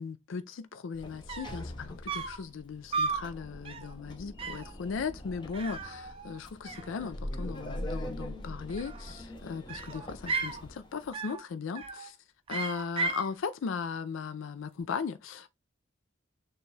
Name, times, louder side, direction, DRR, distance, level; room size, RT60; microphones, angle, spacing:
voice 1, 0.0-12.2 12.5-15.5, left 5 dB, 75° left, 0.4 m, -37 dB
Sliding door, 0.9-11.1, left 1 dB, 20° left, 0.6 m, -43 dB
sound 1, 1.0-1.1 1.3-1.6 2.1-2.4 2.9-3.3 3.6-3.9 4.4-4.7 5.5-6.4 6.6-7.4 8.6-9.2 9.7-10.6 11.1-11.4 11.7-12.1 12.5-13.3, right 4 dB, 25° right, 0.4 m, -35 dB
6.5 x 2.3 x 3.2 m
head